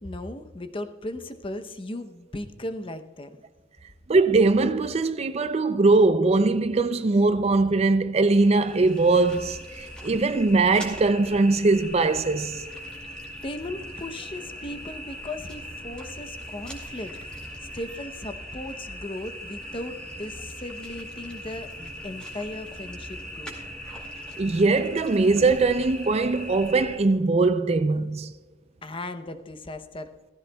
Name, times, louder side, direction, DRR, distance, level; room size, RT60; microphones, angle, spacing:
voice 1, 0.0-3.4 13.4-17.1 17.6-23.5 28.8-30.3, left 1 dB, 25° left, 0.7 m, -37 dB
voice 2, 4.1-12.6 24.4-28.3, right 3 dB, 30° right, 0.4 m, -21 dB
sound 1, 8.4-27.0, equal, 5° left, 2.3 m, -40 dB
16.0 x 15.0 x 2.3 m
head